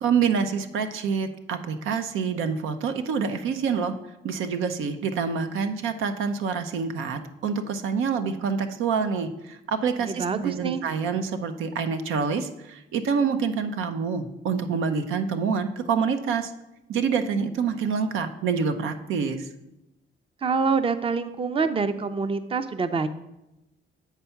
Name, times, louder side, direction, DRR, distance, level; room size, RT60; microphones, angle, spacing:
voice 1, 0.0-3.9 4.2-16.5 16.9-19.5, right 6 dB, 85° right, 8 dB, 0.7 m, -27 dB
voice 2, 10.0-10.8 20.4-23.1, right 5 dB, 30° right, 11 dB, 0.5 m, -26 dB
8.3 x 4.5 x 5.7 m, 0.92 s
cardioid pair, 90°, 20 cm